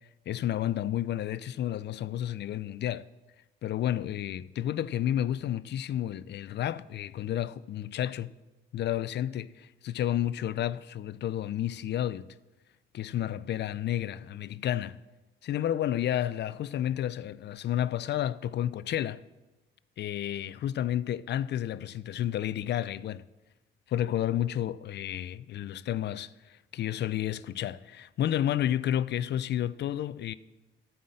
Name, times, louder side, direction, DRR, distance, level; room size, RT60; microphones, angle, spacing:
voice 1, 0.3-3.0 3.6-8.3 8.7-12.3 12.9-15.0 15.4-19.2 20.0-23.2 23.9-30.3, left 11 dB, 60° left, 0.5 m, -31 dB
12.5 x 5.6 x 7.8 m
cardioid pair, 90°, 20 cm